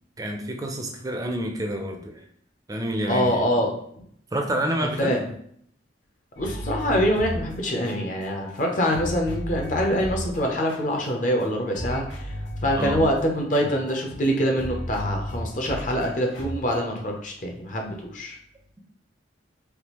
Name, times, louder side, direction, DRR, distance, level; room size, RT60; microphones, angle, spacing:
voice 1, 0.2-2.1 2.7-3.5 4.3-5.2 12.7-13.0, right 1 dB, 20° right, 3 dB, 0.4 m, -28 dB
voice 2, 3.1-3.7 5.0-5.2 6.4-18.4, equal, 45° left, 1 dB, 0.6 m, -25 dB
sound 1, 6.4-8.6 8.9-11.4 11.7-16.9, equal, 75° left, 1.3 m, -35 dB
3.4 x 2.3 x 3.0 m, 0.66 s
head